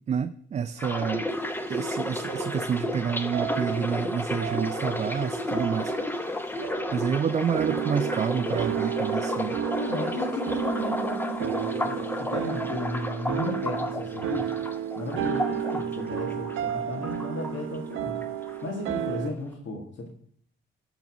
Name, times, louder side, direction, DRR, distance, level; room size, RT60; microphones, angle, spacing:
voice 1, 0.1-1.2 1.7-6.5 6.9-9.6, right 7 dB, 35° right, 11 dB, 0.4 m, -29 dB
sound 1, 0.8-16.7 17.0-17.9 18.2-18.6, left 1 dB, 10° left, 0.8 m, -32 dB
sound 2, 2.3-3.0 3.3-4.1 4.4-5.1 5.5-6.3 6.6-7.1 7.6-19.3, right 9 dB, 80° right, 0.8 m, -32 dB
voice 2, 9.7-14.5 14.9-20.1, left 2 dB, 70° left, 0 dB, 1.8 m, -35 dB
11.5 x 4.0 x 6.1 m, 0.64 s
cardioid pair, 90°, 20 cm